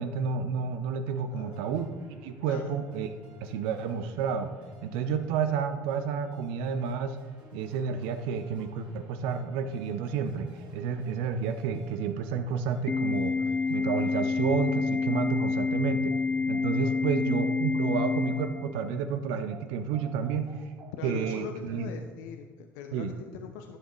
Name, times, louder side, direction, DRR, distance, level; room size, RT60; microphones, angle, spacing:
voice 1, 0.0-3.1 3.4-4.5 4.8-7.2 7.5-13.4 13.7-16.1 16.5-20.5 21.0-21.9 22.9-23.1, right 6 dB, 65° right, 9 dB, 0.7 m, -30 dB
voice 2, 1.2-1.6 2.4-2.8 16.8-17.0 21.0-23.8, left 7 dB, 65° left, 5 dB, 0.6 m, -42 dB
sound 1, 1.4-19.1 19.5-21.4, right 5 dB, 50° right, 2.4 m, -54 dB
Organ, 12.9-18.9, left 4 dB, 15° left, 0.3 m, -28 dB
14.5 x 7.2 x 3.1 m, 1.5 s
figure-of-eight pair, 60°, 10 cm